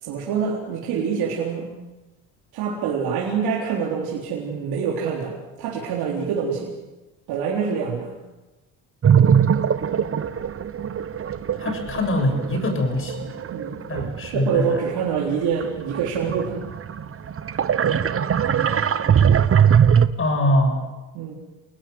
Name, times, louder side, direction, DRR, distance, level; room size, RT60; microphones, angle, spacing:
voice 1, 0.0-1.7 2.5-6.7 7.3-8.1 13.5-13.8 14.2-16.6 21.1-21.3, right 6 dB, 85° right, -3 dB, 4.1 m, -25 dB
sound 1, 9.0-14.9 15.4-20.1, right 8 dB, 35° right, 1.2 m, -21 dB
voice 2, 11.6-13.3 13.9-14.6 20.2-20.8, left 1 dB, 35° left, 5 dB, 6.9 m, -23 dB
28.5 x 20.0 x 8.0 m, 1.1 s
cardioid pair, 105°, 37 cm